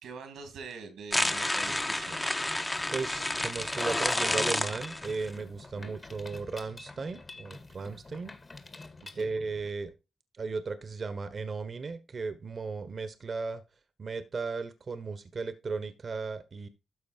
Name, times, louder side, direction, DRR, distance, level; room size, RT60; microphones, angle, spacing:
voice 1, 0.0-2.4 5.7-6.0 9.0-9.3, right 5 dB, 85° right, 7 dB, 2.7 m, -45 dB
sound 1, 1.1-5.3, left 1 dB, 20° left, 1.2 m, -30 dB
Mechanisms, 2.7-9.7, left 3 dB, 40° left, 1.9 m, -49 dB
voice 2, 2.9-8.3 9.1-9.9 10.4-13.6 14.0-16.7, right 4 dB, 55° right, 11 dB, 1.4 m, -36 dB
13.0 x 4.5 x 4.5 m, 0.28 s
supercardioid pair, 50°, 0 cm